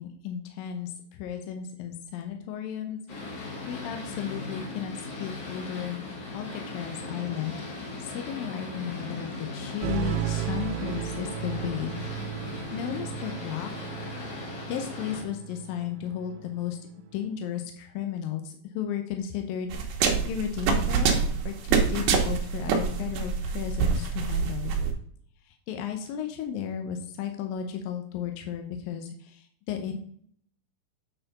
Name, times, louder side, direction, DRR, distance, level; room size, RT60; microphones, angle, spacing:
voice 1, 0.0-3.0 3.7-6.1 6.3-7.6 8.0-12.0 12.7-13.7 14.7-16.8 17.1-21.2 21.5-24.7 25.5-30.0, left 9 dB, 75° left, 4 dB, 2.2 m, -34 dB
Boat Water vehicle, 3.1-15.2, left 3 dB, 50° left, 2.3 m, -38 dB
sound 1, 9.8-16.6, right 12 dB, 85° right, 2.7 m, -35 dB
sound 2, 19.7-24.9, right 6 dB, 70° right, 2.6 m, -26 dB
8.8 x 4.7 x 4.0 m, 0.63 s
omnidirectional pair, 4.6 m